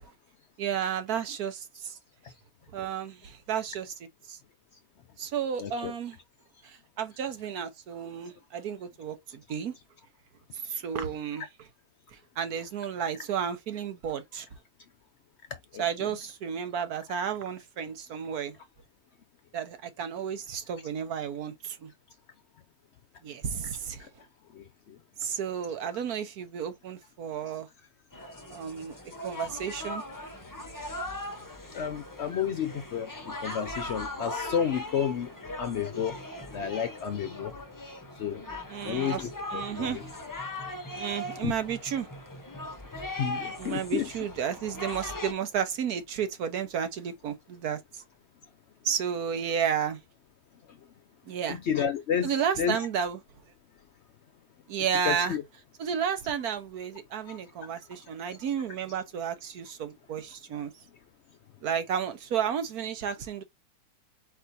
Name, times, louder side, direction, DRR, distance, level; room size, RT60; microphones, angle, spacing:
voice 1, 0.6-2.0 2.7-4.4 5.2-6.2 6.6-9.7 10.5-11.5 12.4-14.5 15.8-18.5 19.5-21.9 23.2-24.1 25.2-27.7 28.5-30.0 38.7-39.2 39.5-40.0 41.0-42.1 43.6-48.0 48.8-50.0 51.3-51.6 52.2-53.2 54.7-55.4 55.8-60.7 61.6-63.4, right 8 dB, 75° right, 1.4 m, -32 dB
voice 2, 5.6-5.9 15.7-15.8 31.7-33.1 33.4-35.3 35.6-36.1 36.5-37.5 38.2-38.4 38.9-40.0 41.4-41.5 43.2-44.1 51.5-52.3 52.6-52.8 55.0-55.4 57.3-57.4, left 8 dB, 65° left, 0.7 m, -30 dB
sound 1, 28.1-45.3, left 1 dB, 20° left, 0.6 m, -39 dB
4.5 x 4.2 x 2.6 m
omnidirectional pair, 1.7 m